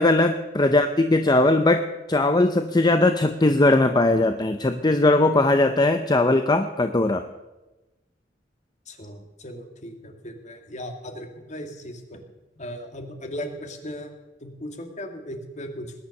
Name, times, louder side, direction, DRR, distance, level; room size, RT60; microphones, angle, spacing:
voice 1, 0.0-7.2, left 2 dB, 25° left, 8 dB, 0.7 m, -19 dB
voice 2, 8.9-12.2 12.6-14.1 14.4-15.9, equal, 40° left, 5 dB, 2.1 m, -37 dB
20.0 x 10.0 x 6.5 m, 1.1 s
head